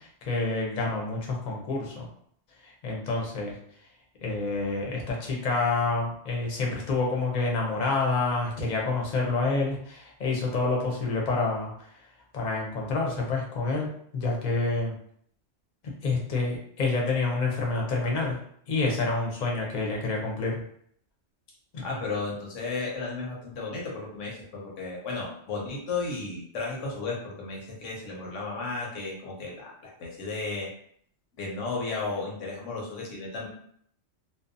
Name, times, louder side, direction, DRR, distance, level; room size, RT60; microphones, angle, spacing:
voice 1, 0.0-2.1 2.6-3.6 4.2-11.7 12.3-14.9 15.8-18.4 18.7-20.6 21.7-21.8, left 3 dB, 45° left, -2 dB, 0.7 m, -28 dB
voice 2, 21.8-30.7 31.3-33.5, left 3 dB, 85° left, -3 dB, 1.1 m, -34 dB
2.6 x 2.0 x 2.6 m, 0.65 s
omnidirectional pair, 1.2 m